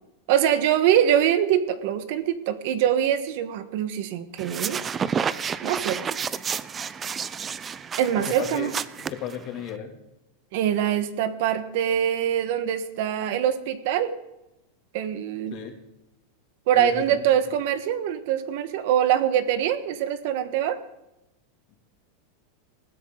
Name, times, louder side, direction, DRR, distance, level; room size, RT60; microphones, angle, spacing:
voice 1, 0.3-4.8 5.6-6.2 8.0-8.7 10.5-14.1 14.9-15.5 16.7-20.8, right 10 dB, 55° right, 11 dB, 1.4 m, -23 dB
sound 1, 4.4-9.7, right 6 dB, 15° right, 0.5 m, -30 dB
voice 2, 8.1-8.7 9.1-9.9 15.5-15.7 16.7-17.2 21.7-21.8, left 9 dB, 40° left, 3 dB, 2.7 m, -34 dB
20.5 x 15.0 x 3.9 m, 0.91 s
supercardioid pair, 160°, 0 cm